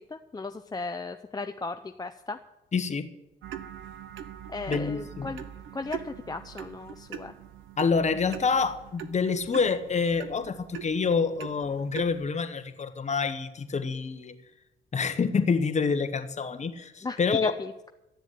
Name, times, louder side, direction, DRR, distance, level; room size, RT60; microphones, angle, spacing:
voice 1, 0.0-2.4 4.5-5.4 5.7-7.3 17.0-17.7, left 3 dB, 20° left, 6 dB, 0.7 m, -36 dB
voice 2, 2.7-3.1 4.7-5.3 7.8-14.4 14.9-17.5, left 5 dB, 35° left, 8 dB, 1.4 m, -27 dB
sound 1, 3.4-12.3, right 10 dB, 80° right, 0.9 m, -42 dB
13.0 x 7.2 x 9.4 m, 0.93 s
cardioid pair, 90°, 20 cm